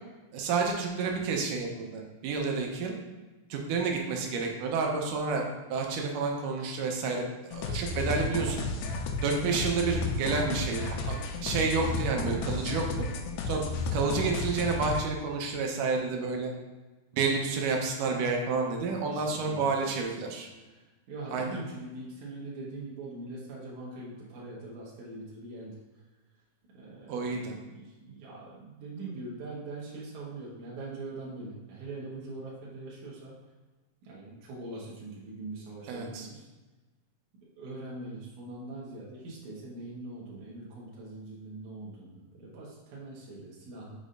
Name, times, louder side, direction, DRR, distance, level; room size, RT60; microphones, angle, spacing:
voice 1, 0.3-2.9 3.5-7.2 7.5-8.6 9.2-11.2 11.4-12.8 13.5-13.7 13.9-16.5 17.1-20.5 21.3-21.6 27.1-27.5 35.9-36.3, right 4 dB, 85° right, 1 dB, 2.4 m, -30 dB
sound 1, 7.5-15.0, left 3 dB, 90° left, 2.3 m, -32 dB
voice 2, 11.4-12.0 19.1-20.4 20.7-26.1 26.7-33.3 34.0-36.5 37.6-43.9, right 2 dB, 70° right, -6 dB, 2.4 m, -42 dB
7.0 x 5.4 x 2.5 m, 1.2 s
omnidirectional pair, 3.7 m